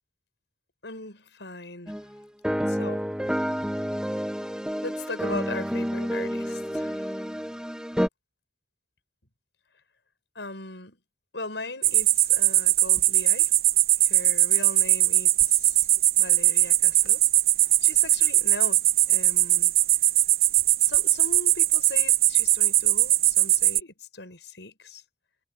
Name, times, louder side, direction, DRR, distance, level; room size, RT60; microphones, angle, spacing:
voice 1, 0.8-2.0 2.7-3.1 4.8-7.3 10.3-11.0 11.3-13.5 14.0-15.9 16.2-17.3 17.8-19.7 20.6-25.0, left 3 dB, 75° left, 5.9 m, -39 dB
sound 1, 1.9-2.0 2.4-8.1, equal, 5° right, 1.4 m, -29 dB
sound 2, 11.8-23.8, right 14 dB, 55° right, 0.9 m, -21 dB
head